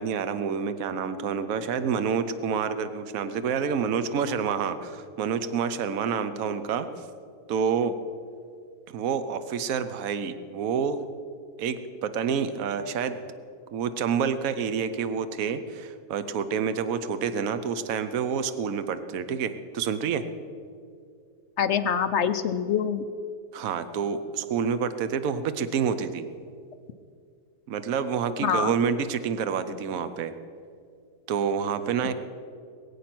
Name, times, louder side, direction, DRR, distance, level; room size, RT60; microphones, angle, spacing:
voice 1, 0.0-6.9 7.5-7.9 8.9-11.1 11.6-13.2 13.7-20.2 23.5-26.3 27.7-30.3 31.3-32.1, right 6 dB, 65° right, 11 dB, 1.2 m, -28 dB
voice 2, 21.6-23.1 28.4-28.7, left 7 dB, 65° left, 9 dB, 0.7 m, -25 dB
21.5 x 8.5 x 6.0 m, 2.3 s
omnidirectional pair, 1.7 m